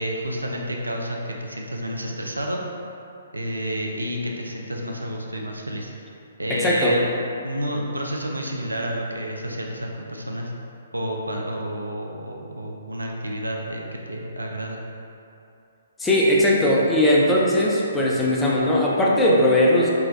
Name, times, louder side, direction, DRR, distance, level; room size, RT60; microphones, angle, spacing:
voice 1, 0.0-2.6 3.3-5.9 6.4-7.1 7.4-10.5 10.9-14.8, equal, 80° right, 0 dB, 0.5 m, -30 dB
voice 2, 6.5-7.0 16.0-19.9, left 1 dB, 10° left, -5 dB, 0.5 m, -19 dB
4.7 x 2.9 x 3.1 m, 2.7 s
figure-of-eight pair, 125°, 0 cm